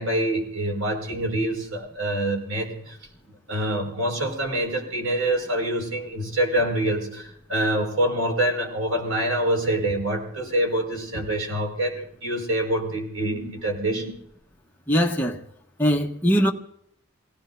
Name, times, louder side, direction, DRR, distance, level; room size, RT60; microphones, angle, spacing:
voice 1, 0.0-3.0 3.5-14.1, right 1 dB, 85° right, 5.6 m, -26 dB
voice 2, 14.9-15.4 15.8-16.5, equal, 10° left, 1.3 m, -21 dB
28.0 x 18.0 x 2.7 m
head